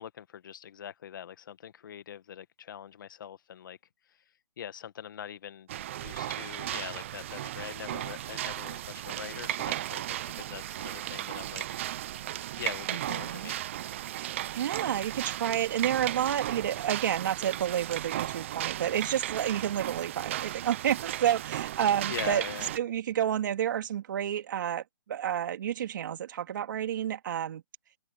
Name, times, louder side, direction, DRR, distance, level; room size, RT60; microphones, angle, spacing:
voice 1, 0.0-3.8 4.6-5.7 5.9-10.0 10.4-11.8 12.6-13.6 22.1-22.7, left 9 dB, 50° left, 1.7 m, -42 dB
sound 1, 5.7-22.8, right 13 dB, 30° right, 0.5 m, -35 dB
voice 2, 12.9-13.5 14.1-22.4 22.7-27.6, right 10 dB, 50° right, 2.7 m, -30 dB
open air
hypercardioid pair, 165°, 13 cm